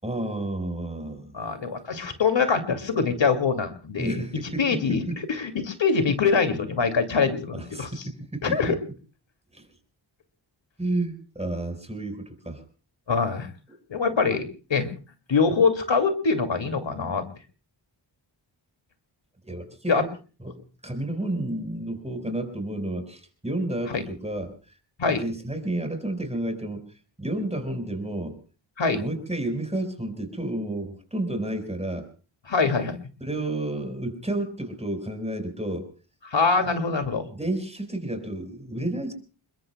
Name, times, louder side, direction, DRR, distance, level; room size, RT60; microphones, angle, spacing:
voice 1, 0.0-1.4 4.0-5.2 7.5-8.8 9.5-9.6 10.8-12.6 19.4-20.0 20.4-24.5 25.0-26.9 27.2-28.4 28.9-32.1 33.2-35.9 37.3-39.1, right 1 dB, 15° right, 6 dB, 4.8 m, -31 dB
voice 2, 1.3-4.2 4.6-8.1 8.4-8.7 13.1-13.5 13.9-14.9 15.3-17.2 19.9-20.0 23.9-24.0 25.0-25.2 28.8-29.0 32.5-33.0 36.2-37.2, left 5 dB, 75° left, 7 dB, 2.5 m, -24 dB
29.0 x 22.0 x 2.3 m, 0.37 s
wide cardioid pair, 95°, 45 cm